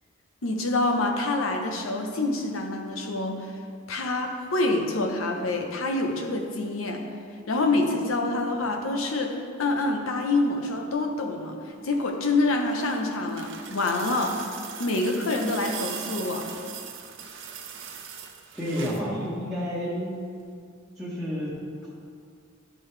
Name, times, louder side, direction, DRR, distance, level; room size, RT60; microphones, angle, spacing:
voice 1, 0.4-3.5 3.9-7.1 7.5-14.4 14.8-16.5, left 2 dB, 85° left, 3 dB, 0.8 m, -26 dB
sound 1, 12.3-19.1 20.4-20.5, right 8 dB, 65° right, 0.7 m, -40 dB
voice 2, 18.5-20.1 21.0-21.9, equal, ahead, -9 dB, 1.1 m, -30 dB
11.5 x 5.3 x 3.3 m, 2.2 s
head